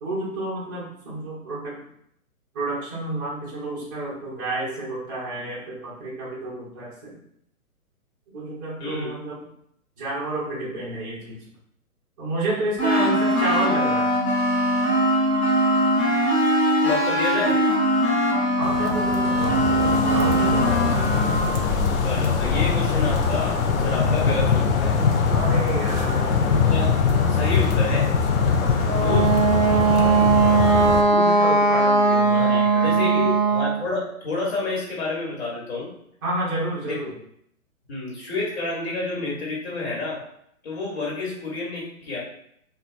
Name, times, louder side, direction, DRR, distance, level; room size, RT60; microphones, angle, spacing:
voice 1, 0.0-1.8 2.5-7.2 8.3-9.4 10.0-11.4 12.2-14.1 18.6-21.2 25.3-26.3 31.1-33.3 36.2-37.1, right 2 dB, 15° right, -7 dB, 0.4 m, -30 dB
voice 2, 8.8-9.1 16.8-17.6 22.0-24.9 26.7-27.0 27.3-28.1 28.9-29.4 29.7-30.3 32.4-35.9 36.8-37.1 37.9-40.2 40.6-42.2, left 3 dB, 50° left, -3 dB, 1.4 m, -29 dB
sound 1, 12.8-21.6, equal, 30° left, 1.1 m, -21 dB
sound 2, 18.6-31.0, left 5 dB, 65° left, 0.6 m, -22 dB
Wind instrument woodwind instrument, 28.8-33.8, right 3 dB, 40° right, 0.9 m, -19 dB
3.0 x 2.3 x 2.5 m, 0.70 s
figure-of-eight pair, 130°, 43 cm